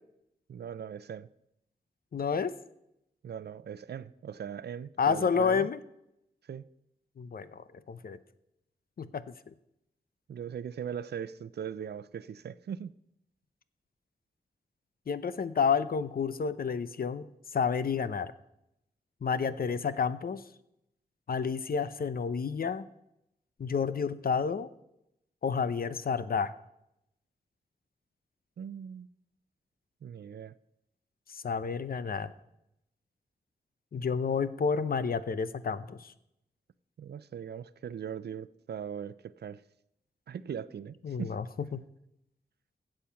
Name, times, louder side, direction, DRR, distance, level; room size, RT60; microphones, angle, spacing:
voice 1, 0.5-1.3 3.2-5.7 6.4-6.6 10.3-12.9 28.6-29.1 30.0-30.5 37.0-39.6 40.3-41.3, right 8 dB, 80° right, 0.5 m, -40 dB
voice 2, 2.1-2.5 5.0-5.8 7.2-8.2 9.0-9.3 15.1-17.2 17.5-18.3 19.2-20.4 21.3-22.8 23.6-24.7 25.4-26.5 31.3-32.3 33.9-36.1 41.0-41.4 41.7-41.8, left 6 dB, 65° left, 0.7 m, -30 dB
15.5 x 7.8 x 5.8 m
wide cardioid pair, 105°, 17 cm